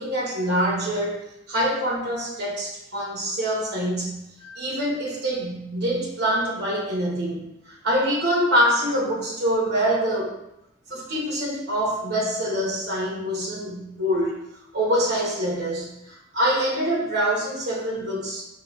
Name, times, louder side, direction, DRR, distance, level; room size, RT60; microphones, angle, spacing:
voice 1, 0.0-10.4 10.9-14.3 14.7-18.4, equal, 55° right, -3 dB, 1.1 m, -25 dB
5.5 x 2.3 x 2.3 m, 0.84 s
head